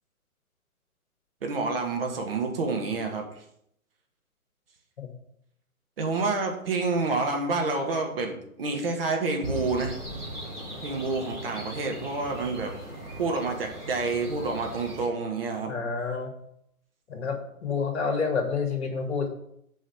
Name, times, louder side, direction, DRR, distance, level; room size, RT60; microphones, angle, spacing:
voice 1, 1.4-3.4 6.0-10.0 10.8-12.7 13.2-15.7, right 3 dB, 40° right, 2 dB, 1.5 m, -28 dB
sound 1, 9.4-15.1, right 1 dB, 5° right, 3.1 m, -38 dB
voice 2, 15.7-16.3 17.1-19.3, left 5 dB, 45° left, 3 dB, 2.1 m, -29 dB
6.2 x 5.5 x 6.5 m, 0.74 s
figure-of-eight pair, 135°, 44 cm